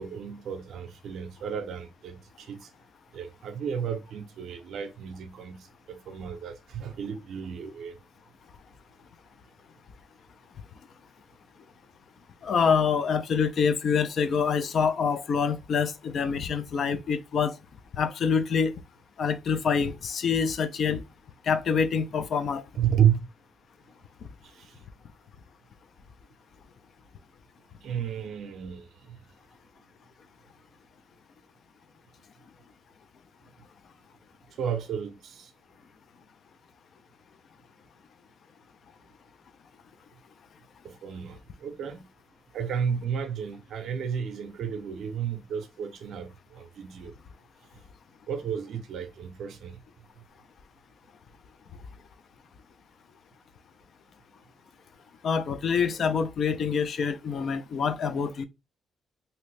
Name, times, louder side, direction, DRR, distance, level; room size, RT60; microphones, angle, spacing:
voice 1, 0.0-2.7 3.1-8.0 22.7-23.3 24.4-24.8 27.8-29.2 34.6-35.5 40.8-42.1 42.5-47.1 48.3-49.8, right 8 dB, 70° right, 0.5 m, -32 dB
voice 2, 12.4-17.6 17.9-18.7 19.2-21.0 21.5-22.6 55.2-58.4, left 6 dB, 55° left, 0.4 m, -26 dB
2.8 x 2.6 x 3.2 m
cardioid pair, 90°, 0 cm